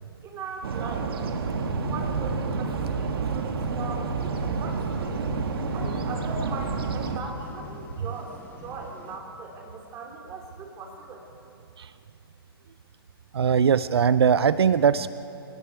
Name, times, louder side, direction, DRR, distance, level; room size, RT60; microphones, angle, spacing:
voice 1, 0.2-1.1 1.9-5.2 5.7-11.2, right 4 dB, 20° right, 1 dB, 3.2 m, -39 dB
sound 1, 0.6-7.2, right 4 dB, 70° right, 1.8 m, -29 dB
sound 2, 4.2-9.2, left 3 dB, 15° left, 2.0 m, -49 dB
voice 2, 13.3-15.1, right 7 dB, 90° right, 15 dB, 0.5 m, -20 dB
29.0 x 18.5 x 4.8 m, 2.8 s
hypercardioid pair, 140°, 13 cm